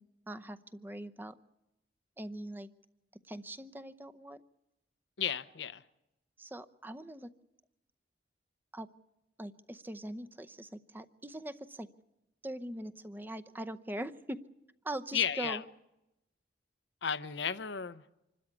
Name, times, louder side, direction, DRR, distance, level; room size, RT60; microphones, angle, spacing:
voice 1, 0.0-1.4 2.2-2.7 3.3-4.4 6.4-7.3 8.7-8.9 9.4-11.9 12.4-14.4 14.8-15.6, right 1 dB, 10° right, 0.7 m, -42 dB
voice 2, 5.2-5.8 15.1-15.6 17.0-18.0, left 8 dB, 70° left, 0.7 m, -33 dB
26.0 x 13.0 x 9.7 m
head